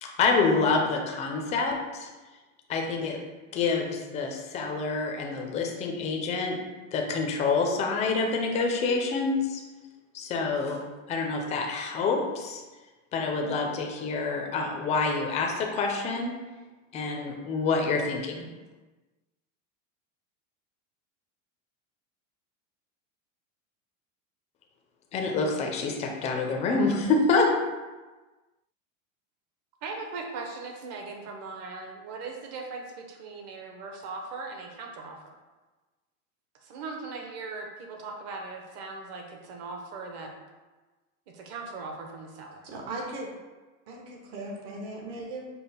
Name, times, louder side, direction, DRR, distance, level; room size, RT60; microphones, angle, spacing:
voice 1, 0.0-2.1 2.7-3.2 3.5-6.6 6.9-9.6 10.1-10.8 11.1-12.6 13.1-16.4 16.9-18.5 25.1-27.7, left 4 dB, 20° left, 1 dB, 0.4 m, -27 dB
voice 2, 29.8-35.4 36.5-40.3 41.3-42.7, right 3 dB, 40° right, 2 dB, 0.7 m, -39 dB
voice 3, 42.6-43.3 43.9-45.5, right 2 dB, 60° right, 0 dB, 1.2 m, -38 dB
5.3 x 2.1 x 4.2 m, 1.2 s
supercardioid pair, 140°, 39 cm